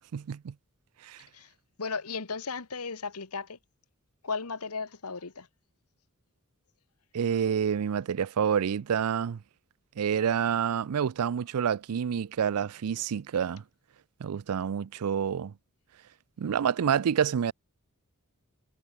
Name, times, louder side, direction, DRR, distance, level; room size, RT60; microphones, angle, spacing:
voice 1, 0.1-0.5 1.0-1.3 7.1-9.4 10.0-13.6 14.2-15.5 16.4-17.5, right 8 dB, 80° right, 0.4 m, -28 dB
voice 2, 1.8-3.6 4.2-5.5, left 4 dB, 80° left, 1.5 m, -35 dB
head